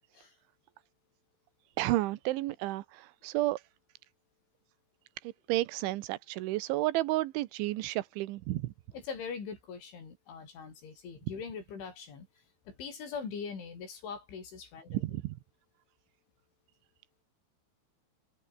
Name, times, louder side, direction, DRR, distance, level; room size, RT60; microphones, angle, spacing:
voice 1, 1.8-3.6 5.2-8.7 14.9-15.4, right 17 dB, 90° right, 3.5 m, -32 dB
voice 2, 8.9-12.3 12.7-15.0, left 6 dB, 90° left, 8.5 m, -42 dB
omnidirectional pair, 5.3 m